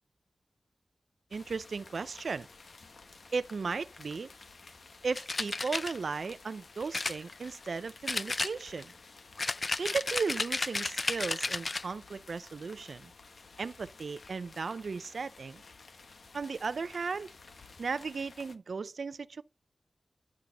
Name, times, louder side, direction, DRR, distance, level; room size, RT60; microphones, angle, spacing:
sound 1, 1.3-18.6, left 4 dB, 70° left, 1.4 m, -54 dB
voice 1, 1.3-2.5 3.3-4.3 5.0-8.9 9.8-13.1 13.6-15.6 16.3-17.3 17.8-19.4, right 4 dB, 75° right, 0.6 m, -36 dB
sound 2, 5.2-5.9 6.9-7.7 8.1-8.9 9.4-11.9, left 3 dB, 45° left, 0.5 m, -33 dB
11.5 x 5.9 x 4.1 m
cardioid pair, 50°, 0 cm